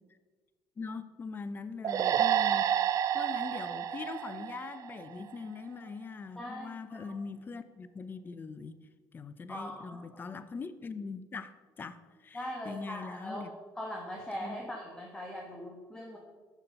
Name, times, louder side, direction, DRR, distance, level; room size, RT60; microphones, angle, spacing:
voice 1, 0.8-2.8 3.1-8.8 9.1-13.5 14.4-14.6, left 4 dB, 30° left, 13 dB, 0.5 m, -42 dB
sound 1, 1.8-5.3, right 10 dB, 55° right, 0.4 m, -29 dB
voice 2, 6.3-7.1 9.5-10.3 12.3-13.5 13.8-16.2, equal, 10° left, 0 dB, 1.2 m, -41 dB
7.1 x 6.6 x 5.5 m, 1.4 s
cardioid pair, 100°, 7 cm